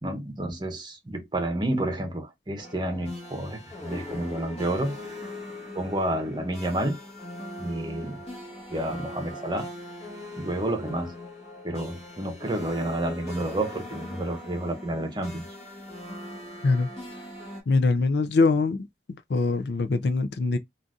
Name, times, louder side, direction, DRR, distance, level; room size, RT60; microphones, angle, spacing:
voice 1, 0.0-5.2 5.7-7.0 7.6-8.2 8.7-9.7 10.4-11.1 11.6-15.5, right 1 dB, 25° right, 0.8 m, -30 dB
sound 1, 2.6-17.6, left 1 dB, 35° left, 1.3 m, -41 dB
voice 2, 17.7-18.8 19.3-20.6, left 3 dB, 65° left, 0.4 m, -23 dB
3.8 x 2.5 x 2.3 m
head